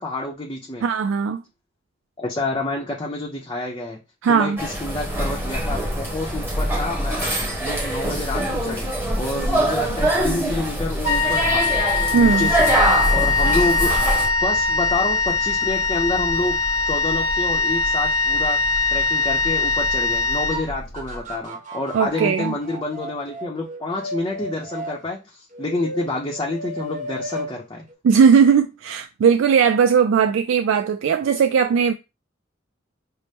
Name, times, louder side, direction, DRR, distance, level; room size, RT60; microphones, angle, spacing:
voice 1, 0.0-0.8 2.2-4.0 4.3-8.9 9.2-11.7 12.2-12.7 13.1-13.9 14.4-16.6 16.9-18.6 18.9-27.8, left 2 dB, 20° left, 0.6 m, -28 dB
voice 2, 0.8-1.4 4.2-4.6 12.1-12.5 21.9-22.5 28.0-31.9, right 6 dB, 75° right, 0.3 m, -18 dB
sound 1, 4.6-14.3, right 1 dB, 10° right, 1.1 m, -23 dB
Wind instrument woodwind instrument, 11.0-21.1, left 3 dB, 85° left, 0.9 m, -21 dB
sound 2, 20.9-25.0 25.5-27.5 27.9-28.0, right 1 dB, 40° right, 0.6 m, -34 dB
5.4 x 2.0 x 3.3 m
head